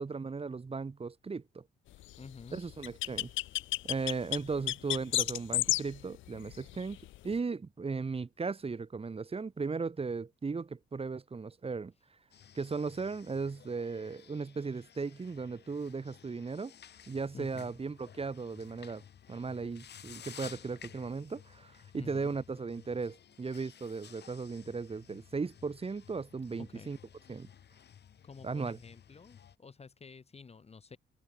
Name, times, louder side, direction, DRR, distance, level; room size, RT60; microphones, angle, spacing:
voice 1, 0.0-1.6 2.5-3.3 3.8-7.0 7.2-11.9 12.5-16.7 17.1-19.0 19.3-27.0 27.3-27.5 28.4-28.8, right 4 dB, 30° right, 2.3 m, -37 dB
voice 2, 2.2-2.6 17.3-17.7 21.9-22.4 26.7-26.9 28.2-31.0, left 5 dB, 30° left, 1.8 m, -50 dB
sound 1, 2.5-7.3, left 16 dB, 75° left, 0.5 m, -31 dB
sound 2, 12.3-29.6, left 9 dB, 60° left, 4.1 m, -55 dB
cardioid pair, 90°, 20 cm